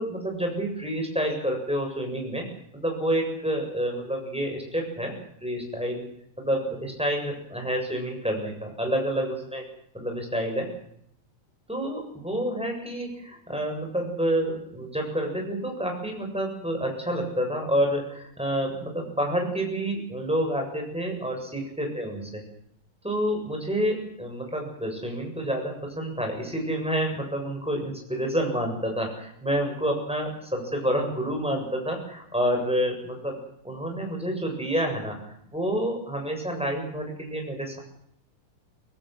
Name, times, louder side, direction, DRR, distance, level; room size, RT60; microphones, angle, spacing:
voice 1, 0.0-2.4 2.7-5.1 5.4-6.1 6.4-9.6 9.9-10.7 11.7-22.2 23.0-33.4 33.6-35.2 35.5-37.8, equal, ahead, 2 dB, 7.4 m, -28 dB
25.5 x 18.0 x 7.9 m, 0.71 s
omnidirectional pair, 4.0 m